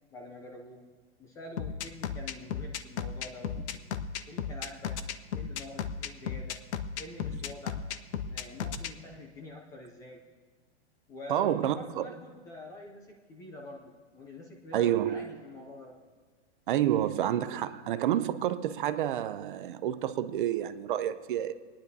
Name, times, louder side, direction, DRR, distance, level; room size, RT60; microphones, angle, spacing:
voice 1, 0.1-0.8 1.2-3.6 4.3-5.0 5.3-6.6 7.0-7.8 8.2-10.2 11.1-16.0, left 1 dB, 10° left, 0 dB, 0.4 m, -46 dB
sound 1, 1.6-8.9, left 8 dB, 70° left, 0.7 m, -34 dB
voice 2, 11.3-12.1 14.7-15.3 16.7-21.5, right 11 dB, 50° right, 12 dB, 0.5 m, -29 dB
26.0 x 10.0 x 2.7 m, 1.5 s
hypercardioid pair, 155°, 35 cm